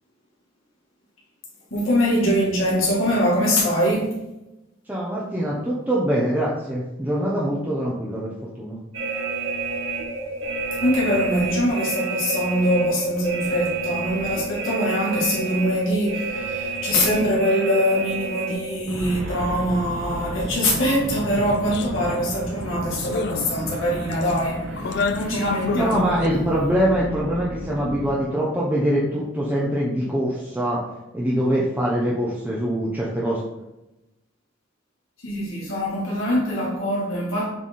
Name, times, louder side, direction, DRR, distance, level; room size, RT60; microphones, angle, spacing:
voice 1, 1.7-4.3 10.8-26.2 35.2-37.5, equal, 80° left, 2.0 m, -23 dB
voice 2, 4.9-8.3 8.6-8.8 25.7-30.8 31.1-33.4, equal, 10° right, 0.8 m, -23 dB
sound 1, 8.9-28.2, right 3 dB, 75° right, 1.1 m, -31 dB
sound 2, 21.7-21.9 22.3-22.4 22.9-23.8 24.1-24.4 24.8-26.3, left 4 dB, 55° left, 0.3 m, -29 dB
7.3 x 3.5 x 4.3 m
head